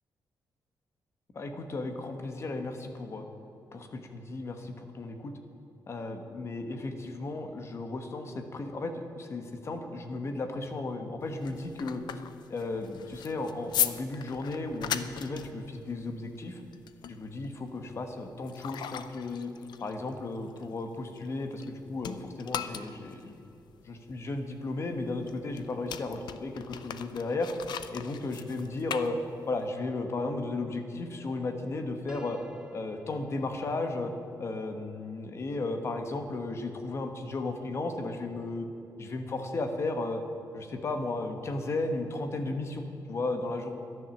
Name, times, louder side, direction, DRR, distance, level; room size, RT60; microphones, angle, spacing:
voice 1, 1.3-3.2 3.7-5.3 5.9-12.0 12.5-16.6 17.1-19.5 19.8-23.4 23.9-27.5 27.9-29.2 29.5-32.4 32.7-34.1 34.4-38.7 39.0-40.2 40.5-43.7, left 2 dB, 40° left, 6 dB, 1.2 m, -34 dB
sound 1, 11.2-21.7 22.0-29.7, left 9 dB, 80° left, 0.6 m, -38 dB
Piano, 32.1-37.9, right 2 dB, 10° right, 0.7 m, -55 dB
12.0 x 11.0 x 7.2 m, 2.7 s
wide cardioid pair, 165°, 7 cm